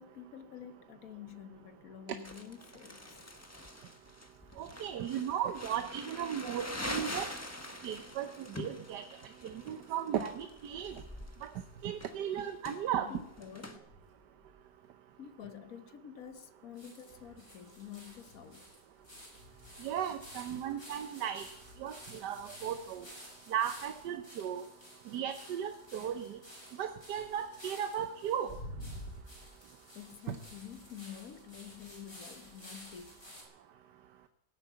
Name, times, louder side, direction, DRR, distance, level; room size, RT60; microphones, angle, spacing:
voice 1, 0.0-3.2 13.0-13.8 15.2-18.6 29.9-33.1, left 9 dB, 60° left, 1.3 m, -49 dB
Crumpling crinkling, 2.2-13.8, left 1 dB, 10° left, 1.2 m, -45 dB
voice 2, 4.6-7.3 7.8-9.0 9.4-11.0 11.4-11.5 11.8-13.1 19.8-21.4 21.8-23.0 23.5-24.6 25.1-26.4 26.8-28.5 30.3-30.4, right 9 dB, 90° right, 1.4 m, -36 dB
sound 1, 13.7-14.6 15.1-15.2 15.4-15.5 16.3-16.4 16.8-33.4, equal, 35° left, 6.0 m, -51 dB
17.5 x 9.2 x 8.2 m
omnidirectional pair, 1.7 m